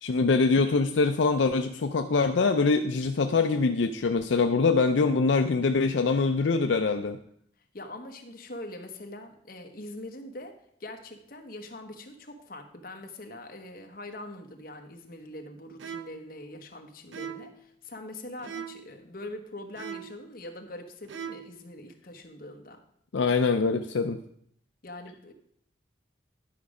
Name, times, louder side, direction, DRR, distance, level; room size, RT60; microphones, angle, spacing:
voice 1, 0.0-7.2 23.1-24.2, left 4 dB, 75° left, 7 dB, 0.5 m, -24 dB
voice 2, 7.7-22.8 24.8-25.3, left 1 dB, 50° left, 4 dB, 1.1 m, -43 dB
sound 1, 15.8-16.3 17.1-17.6 18.4-18.9 19.8-20.3 21.0-21.6, right 7 dB, 80° right, 0.6 m, -40 dB
10.5 x 5.2 x 4.9 m, 0.68 s
head